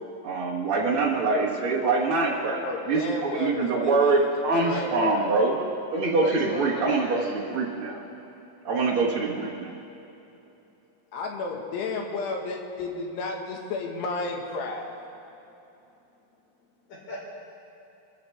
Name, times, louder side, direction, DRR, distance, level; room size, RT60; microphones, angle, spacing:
voice 1, 0.2-2.6 2.9-5.5 5.9-8.0 8.6-9.7, right 3 dB, 90° right, -4 dB, 1.2 m, -24 dB
voice 2, 2.6-4.3 4.6-5.4 11.1-14.9, left 3 dB, 75° left, 1 dB, 3.5 m, -32 dB
voice 3, 4.5-4.8 6.0-7.3 16.9-17.3, left 1 dB, 55° left, -5 dB, 5.7 m, -37 dB
26.0 x 14.5 x 3.4 m, 2.9 s
omnidirectional pair, 4.9 m